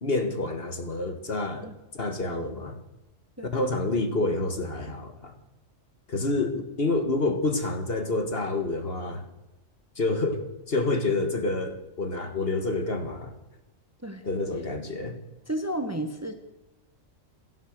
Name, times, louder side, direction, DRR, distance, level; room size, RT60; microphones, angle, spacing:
voice 1, 0.0-2.8 3.4-5.3 6.1-9.2 10.0-13.3 14.2-15.2, left 2 dB, 45° left, 7 dB, 1.8 m, -28 dB
voice 2, 15.5-16.4, right 1 dB, 10° right, 7 dB, 1.2 m, -32 dB
16.5 x 11.5 x 6.6 m, 1.0 s
omnidirectional pair, 1.4 m